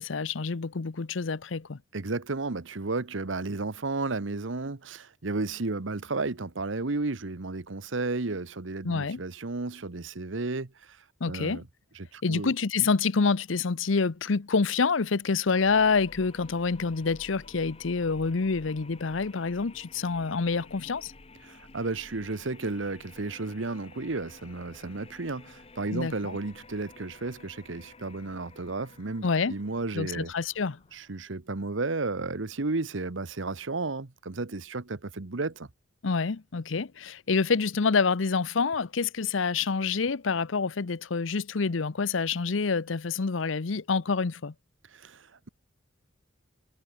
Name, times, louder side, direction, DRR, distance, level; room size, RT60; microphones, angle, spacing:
voice 1, 0.0-1.8 8.8-9.2 11.2-11.6 12.2-21.1 25.9-26.4 29.2-29.5 29.9-30.8 36.0-44.5, left 4 dB, 80° left, 0.7 m, -27 dB
voice 2, 1.9-11.0 11.3-11.6 11.9-12.5 21.4-30.3 30.9-35.7 44.9-45.5, right 3 dB, 75° right, 1.1 m, -33 dB
sound 1, 15.4-31.3, left 3 dB, 30° left, 1.2 m, -52 dB
head